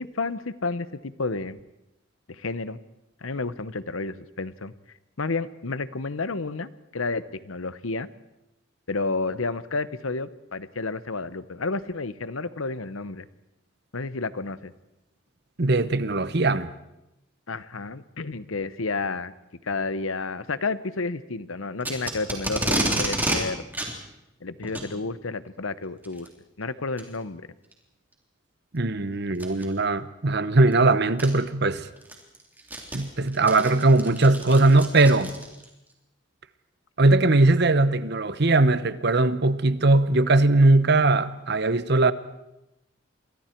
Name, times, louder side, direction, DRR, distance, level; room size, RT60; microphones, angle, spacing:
voice 1, 0.0-1.6 2.3-2.8 3.2-4.7 5.2-8.1 8.9-13.3 13.9-14.7 17.5-19.3 19.6-23.6 24.4-26.3 26.6-27.4, left 3 dB, 85° left, 1.0 m, -31 dB
voice 2, 15.6-16.7 28.7-31.9 32.9-35.4 37.0-42.1, right 2 dB, 55° right, 1.0 m, -20 dB
Packing tape duct tape, 21.8-23.4 23.7-23.9 24.6-24.9 26.0-26.3 27.0-27.1 27.7-27.8 29.3-29.6 30.7-30.8 31.2-31.3 31.8-35.7, right 1 dB, 10° right, 3.6 m, -29 dB
29.5 x 24.0 x 4.6 m
head